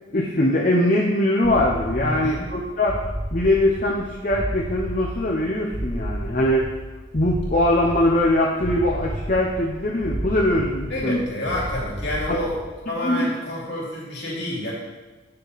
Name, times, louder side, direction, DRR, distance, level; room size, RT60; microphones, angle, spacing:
voice 1, 0.1-3.0 3.3-6.7 7.1-11.2 13.0-13.3, left 1 dB, 40° left, -3 dB, 0.8 m, -21 dB
sound 1, 1.4-12.8, right 1 dB, 20° right, 1.4 m, -32 dB
voice 2, 2.0-2.5 10.9-12.6 12.8-14.7, left 1 dB, 60° left, -5 dB, 2.8 m, -28 dB
9.1 x 6.6 x 4.1 m, 1.2 s
head